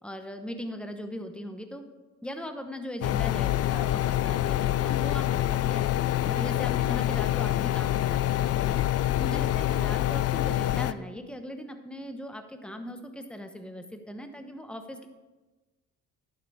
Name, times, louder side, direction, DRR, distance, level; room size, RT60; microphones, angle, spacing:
voice 1, 0.0-1.8 2.2-5.9 6.2-8.8 9.1-15.1, equal, 5° left, 6 dB, 1.0 m, -39 dB
sound 1, 3.0-10.9, left 13 dB, 55° left, 0.5 m, -26 dB
11.0 x 6.7 x 4.9 m, 1.2 s
cardioid pair, 90°, 30 cm